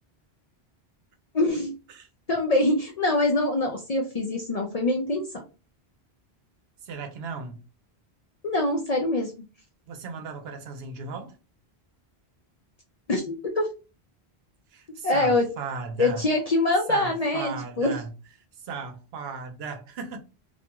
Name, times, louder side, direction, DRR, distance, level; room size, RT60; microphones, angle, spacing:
voice 1, 1.3-1.7 2.3-5.2 8.4-9.3 13.1-13.7 15.0-15.4 16.0-18.0, left 2 dB, 50° left, 0.4 m, -24 dB
voice 2, 6.8-7.6 9.9-11.4 14.7-16.3 16.9-18.1 18.6-20.2, right 4 dB, 75° right, 0.8 m, -36 dB
2.4 x 2.3 x 2.8 m
omnidirectional pair, 1.1 m